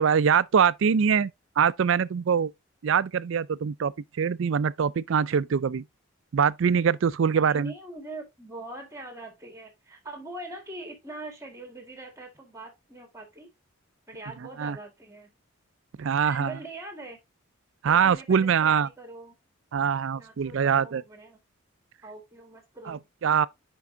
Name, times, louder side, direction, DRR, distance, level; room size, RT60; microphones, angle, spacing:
voice 1, 0.0-2.5 2.8-5.8 6.3-7.7 14.6-14.8 16.0-16.5 17.8-18.9 19.7-21.0 22.9-23.5, right 7 dB, 65° right, 0.4 m, -23 dB
voice 2, 7.3-13.5 14.1-15.3 16.2-17.2 17.8-19.3 20.1-21.4 22.0-23.1, right 2 dB, 15° right, 1.7 m, -42 dB
5.9 x 5.3 x 3.7 m
head